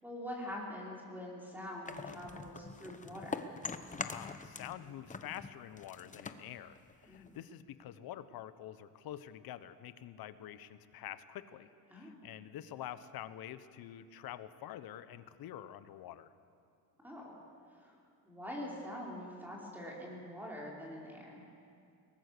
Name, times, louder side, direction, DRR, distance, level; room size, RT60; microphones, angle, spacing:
voice 1, 0.0-3.5 7.1-7.4 11.9-12.2 17.0-17.3 17.8-18.0 18.3-21.4, left 1 dB, 5° right, -4 dB, 5.3 m, -44 dB
sound 1, 1.9-4.8 5.1-7.5, left 4 dB, 20° left, 0.9 m, -43 dB
voice 2, 4.0-16.3, left 11 dB, 65° left, 13 dB, 1.1 m, -47 dB
22.5 x 19.0 x 6.8 m, 2.4 s
cardioid pair, 120°, 39 cm